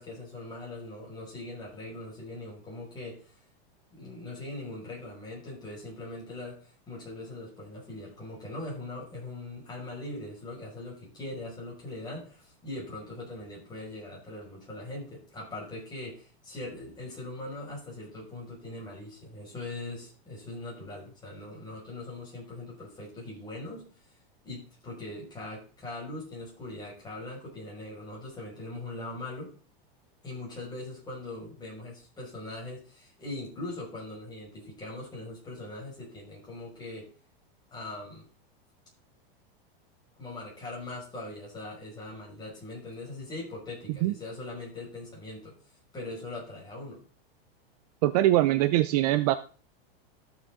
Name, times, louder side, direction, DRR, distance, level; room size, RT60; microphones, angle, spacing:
voice 1, 0.0-3.4 3.9-23.9 24.4-29.5 30.2-37.1 37.7-38.3 40.2-45.6 45.9-47.0, left 2 dB, 15° left, -4 dB, 5.6 m, -41 dB
voice 2, 48.0-49.4, right 15 dB, 40° right, 12 dB, 0.6 m, -22 dB
14.0 x 7.0 x 3.7 m, 0.37 s
supercardioid pair, 160°, 30 cm